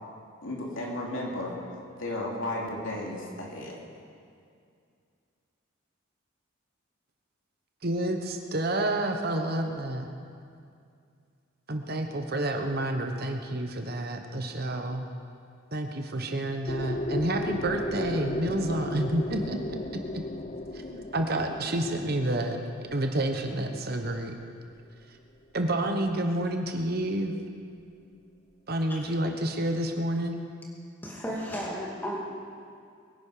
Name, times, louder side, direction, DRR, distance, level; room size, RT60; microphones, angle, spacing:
voice 1, 0.4-1.5 2.0-3.8, left 1 dB, 75° left, -2 dB, 2.9 m, -34 dB
voice 2, 7.8-10.1 11.7-15.0 15.7-20.3 20.7-22.6 22.9-24.3 25.5-27.4 28.7-30.4, right 1 dB, 50° right, 5 dB, 1.1 m, -29 dB
sound 1, 16.7-24.5, left 1 dB, 35° left, 0.6 m, -35 dB
voice 3, 31.0-32.2, equal, 10° left, -4 dB, 2.4 m, -34 dB
22.5 x 10.5 x 5.1 m, 2.3 s
head